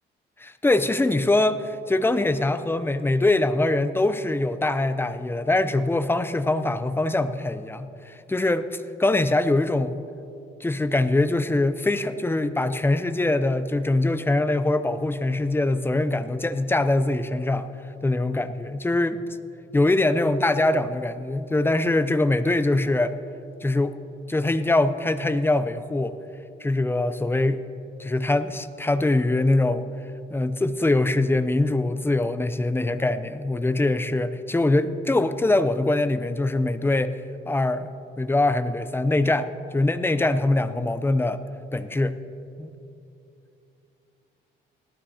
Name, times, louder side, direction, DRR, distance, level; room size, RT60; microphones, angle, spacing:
voice 1, 0.4-10.0 10.6-17.7 18.0-19.2 19.7-23.1 23.6-24.0 24.3-26.2 26.6-27.6 28.0-29.9 30.3-37.2 37.5-37.9 38.2-41.4 41.7-42.2 42.6-42.7, left 2 dB, 10° left, 12 dB, 0.5 m, -23 dB
18.0 x 12.5 x 2.8 m, 2.7 s
cardioid pair, 90°, 20 cm